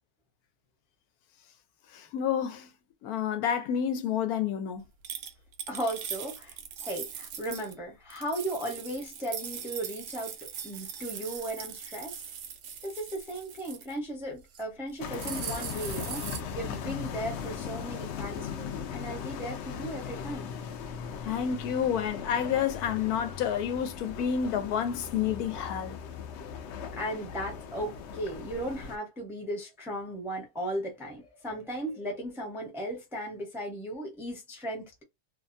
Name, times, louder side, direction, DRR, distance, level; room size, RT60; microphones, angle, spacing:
voice 1, 1.9-2.7 3.0-4.8 21.2-26.0, left 8 dB, 85° left, 1.1 m, -29 dB
sound 1, 5.0-7.7 8.1-13.9 14.4-14.6 14.9-16.4, right 8 dB, 70° right, 0.9 m, -40 dB
voice 2, 5.7-10.3 10.6-12.2 12.8-20.5 26.9-35.0, right 1 dB, 5° right, 0.5 m, -36 dB
sound 2, 15.0-29.0, left 7 dB, 65° left, 0.7 m, -38 dB
2.7 x 2.2 x 2.5 m
omnidirectional pair, 1.6 m